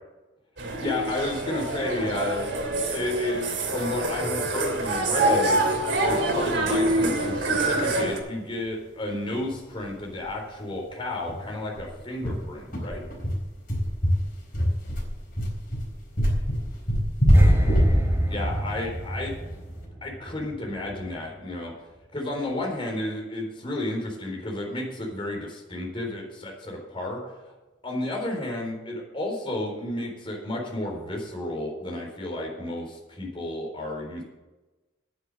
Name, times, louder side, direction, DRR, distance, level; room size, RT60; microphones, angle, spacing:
sound 1, 0.6-8.2, right 2 dB, 65° right, 2.8 m, -26 dB
voice 1, 0.8-2.5 2.9-5.6 6.0-13.0 18.3-19.3 20.0-21.7 22.1-27.5 27.8-34.2, left 1 dB, 30° left, 0 dB, 4.0 m, -32 dB
sound 2, 9.4-9.5 9.8-9.9 10.2-10.3 10.7-10.8 11.3-19.7, equal, 50° left, 4.2 m, -24 dB
sound 3, 17.3-20.5 20.8-21.1, right 1 dB, 15° right, 2.0 m, -25 dB
10.0 x 9.5 x 8.0 m, 1.1 s
head